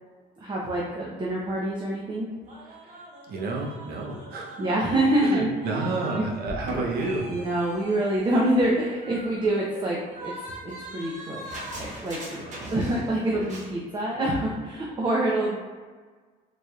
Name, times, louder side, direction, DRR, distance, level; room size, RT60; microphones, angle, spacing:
voice 1, 0.4-2.3 4.6-5.9 6.1-6.3 7.3-10.3 10.6-11.4 11.7-12.4 12.7-15.6, right 1 dB, 30° right, -3 dB, 0.6 m, -26 dB
sound 1, 2.5-6.2 6.5-13.2 13.4-13.7, right 1 dB, 45° right, 1.1 m, -40 dB
voice 2, 2.7-4.6 5.2-7.3 12.3-12.8 13.3-13.5, right 3 dB, 65° right, 0 dB, 0.8 m, -31 dB
3.9 x 3.3 x 2.4 m, 1.5 s
cardioid pair, 110°, 17 cm